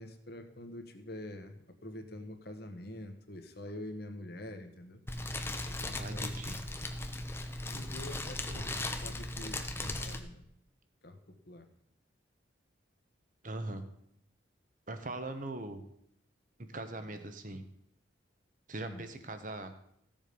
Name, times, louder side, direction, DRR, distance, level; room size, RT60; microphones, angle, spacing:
voice 1, 0.0-5.0 5.6-6.4 7.7-8.7 9.0-10.4 11.0-11.7 18.8-19.0, left 1 dB, 55° left, 7 dB, 1.4 m, -46 dB
Fire, 5.1-10.2, left 2 dB, 10° left, 0.9 m, -38 dB
voice 2, 5.9-6.6 8.5-8.6 13.4-13.8 14.9-15.8 16.7-17.6 18.7-19.7, right 2 dB, 40° right, 8 dB, 1.2 m, -40 dB
15.5 x 7.4 x 5.3 m, 0.75 s
head